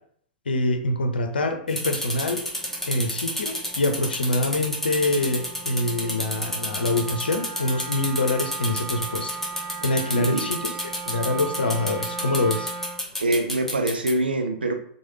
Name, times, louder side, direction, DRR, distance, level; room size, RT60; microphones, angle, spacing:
voice 1, 0.5-2.4 2.9-9.4 9.8-10.7 11.1-12.7, left 2 dB, 80° left, 6 dB, 0.5 m, -25 dB
Wind instrument woodwind instrument, 1.5-13.1, right 5 dB, 45° right, 0.6 m, -38 dB
sound 1, 1.7-14.1, left 1 dB, 5° left, 0.8 m, -30 dB
voice 2, 10.1-10.5 13.2-14.7, right 2 dB, 85° right, 5 dB, 0.5 m, -24 dB
3.1 x 2.2 x 3.1 m, 0.62 s
figure-of-eight pair, 100°, 5 cm